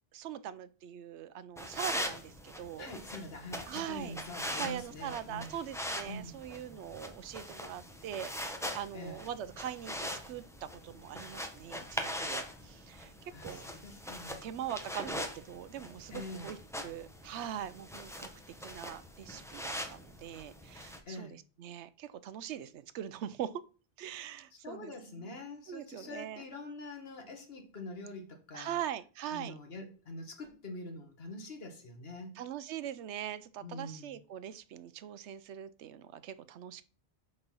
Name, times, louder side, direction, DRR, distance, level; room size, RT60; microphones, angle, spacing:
voice 1, 0.1-2.9 3.7-4.2 4.6-13.1 13.4-13.7 14.4-16.6 16.8-18.3 18.6-23.6 24.0-25.3 25.7-26.4 28.5-29.5 32.4-36.8, right 10 dB, 85° right, 14 dB, 0.9 m, -42 dB
sound 1, 1.6-21.0, equal, 5° left, 0.8 m, -42 dB
voice 2, 2.8-5.6 6.1-6.4 8.9-9.2 13.3-14.4 16.1-16.5 21.1-21.4 24.5-28.8 29.3-32.4 33.6-34.2, left 2 dB, 60° left, 4 dB, 1.7 m, -45 dB
6.8 x 4.1 x 5.4 m, 0.37 s
omnidirectional pair, 1.1 m